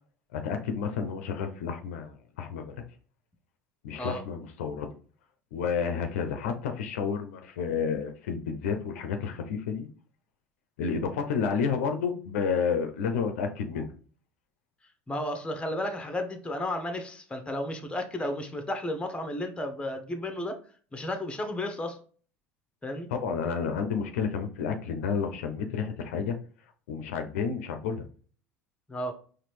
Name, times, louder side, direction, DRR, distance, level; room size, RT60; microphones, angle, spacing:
voice 1, 0.3-2.8 3.8-4.9 5.5-9.9 10.8-13.9 23.1-26.4 26.9-28.0, left 6 dB, 75° left, 6 dB, 0.5 m, -30 dB
voice 2, 15.1-20.6 20.9-22.0 22.8-23.1 28.9-29.1, left 1 dB, 15° left, 6 dB, 0.8 m, -33 dB
4.1 x 2.5 x 3.2 m, 0.41 s
hypercardioid pair, 75°, 8 cm